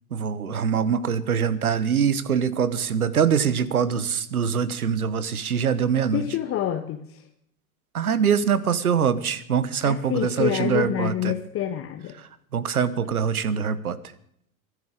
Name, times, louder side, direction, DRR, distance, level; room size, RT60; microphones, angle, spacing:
voice 1, 0.1-6.2 7.9-11.3 12.5-14.0, right 7 dB, 80° right, 17 dB, 1.2 m, -23 dB
voice 2, 6.1-7.2 9.8-12.2, left 11 dB, 30° left, 7 dB, 1.3 m, -27 dB
24.0 x 13.0 x 3.8 m, 0.69 s
figure-of-eight pair, 85°, 43 cm